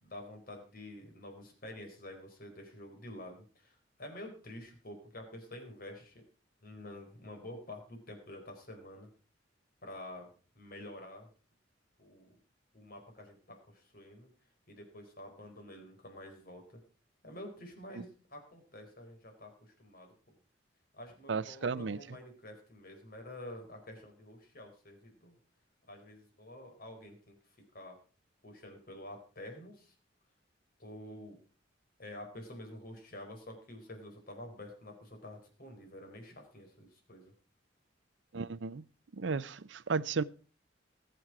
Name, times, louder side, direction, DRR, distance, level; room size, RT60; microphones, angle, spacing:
voice 1, 0.0-6.2 6.6-9.1 9.8-10.3 10.5-11.3 12.0-12.4 12.7-14.3 14.7-16.8 17.2-20.1 20.9-25.3 25.9-27.4 27.7-28.0 28.4-29.9 30.8-31.4 32.0-37.3, left 1 dB, 50° left, 4.3 m, -48 dB
voice 2, 21.3-22.0 38.3-38.8 39.1-40.2, right 4 dB, 70° right, 0.6 m, -34 dB
20.0 x 7.9 x 4.9 m
head